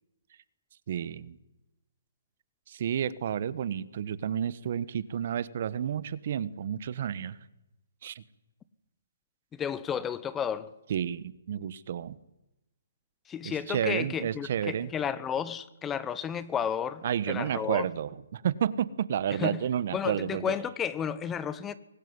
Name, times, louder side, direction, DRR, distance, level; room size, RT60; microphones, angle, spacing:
voice 1, 0.9-1.4 2.7-7.4 8.0-8.2 10.9-12.2 13.4-14.9 17.0-20.5, right 9 dB, 50° right, 1.3 m, -31 dB
voice 2, 9.5-10.7 13.3-17.9 19.4-19.6 19.9-21.7, left 8 dB, 15° left, 1.0 m, -32 dB
24.0 x 18.5 x 9.7 m
hypercardioid pair, 150°, 0 cm